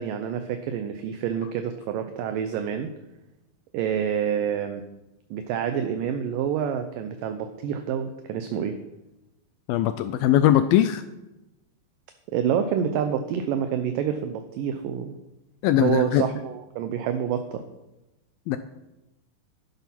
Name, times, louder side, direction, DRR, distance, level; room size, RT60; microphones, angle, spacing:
voice 1, 0.0-2.9 3.7-4.8 5.3-8.8 12.3-15.1 15.8-17.6, right 8 dB, 75° right, 7 dB, 2.2 m, -27 dB
voice 2, 9.7-11.0 15.6-16.3 18.5-18.6, left 11 dB, 80° left, 11 dB, 2.2 m, -20 dB
11.0 x 10.5 x 5.9 m, 0.96 s
omnidirectional pair, 4.5 m